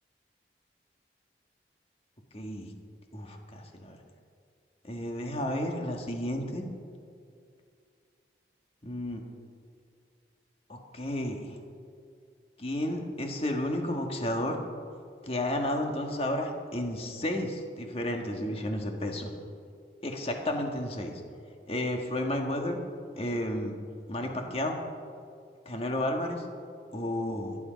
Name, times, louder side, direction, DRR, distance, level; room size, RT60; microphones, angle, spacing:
voice 1, 2.3-2.7 3.1-4.0 4.8-6.6 8.8-9.2 10.7-11.6 12.6-14.6 15.2-19.3 20.0-21.2 21.7-22.8 23.2-23.7 24.1-24.8 25.6-26.4 26.9-27.6, left 1 dB, 35° left, 3 dB, 1.6 m, -32 dB
23.5 x 10.0 x 5.2 m, 2.3 s
head